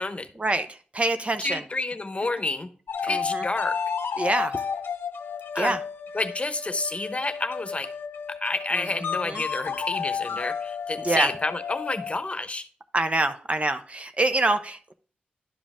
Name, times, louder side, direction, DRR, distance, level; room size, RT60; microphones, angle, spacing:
voice 1, 0.4-1.6 3.0-3.5 4.2-4.6 5.5-5.8 8.7-8.8 9.3-9.4 11.0-11.3 12.9-14.9, right 2 dB, 35° right, 9 dB, 0.8 m, -26 dB
voice 2, 1.4-2.7 3.0-3.8 5.5-5.8 6.1-7.9 8.3-12.7, left 2 dB, 35° left, 9 dB, 0.9 m, -29 dB
sound 1, 2.9-12.3, left 6 dB, 80° left, 0.6 m, -32 dB
11.5 x 5.1 x 3.6 m, 0.41 s
cardioid pair, 55°, 4 cm